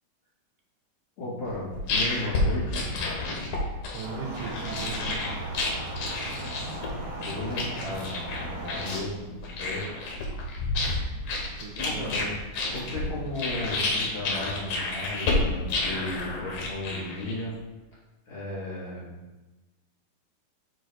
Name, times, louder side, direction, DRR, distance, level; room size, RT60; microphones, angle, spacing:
voice 1, 1.2-2.9 7.2-8.1 8.5-10.0 11.8-12.3 12.7-17.5 18.3-19.1, left 1 dB, 40° left, -8 dB, 3.1 m, -35 dB
sound 1, 1.5-17.6, left 2 dB, 60° left, 1.9 m, -30 dB
voice 2, 3.9-5.3 11.2-12.2, right 4 dB, 80° right, 1 dB, 2.3 m, -38 dB
sound 2, 4.0-9.0, right 1 dB, 60° right, 2.3 m, -37 dB
5.9 x 4.5 x 4.6 m, 1.1 s
omnidirectional pair, 3.8 m